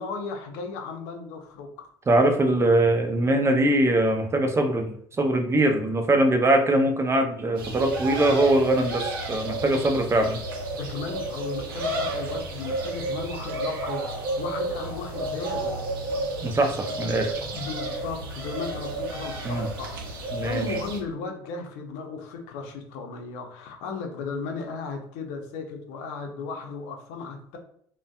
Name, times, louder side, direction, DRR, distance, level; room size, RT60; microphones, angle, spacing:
voice 1, 0.0-1.9 9.7-9.8 10.7-14.1 14.4-15.8 17.5-27.6, left 4 dB, 65° left, 3 dB, 0.6 m, -35 dB
voice 2, 2.1-10.4 16.4-17.3 19.4-19.7 20.3-20.8, right 1 dB, 20° right, 5 dB, 0.5 m, -22 dB
sound 1, 7.6-21.0, right 2 dB, 80° right, 0.6 m, -32 dB
2.5 x 2.2 x 2.3 m, 0.65 s
hypercardioid pair, 65°, 12 cm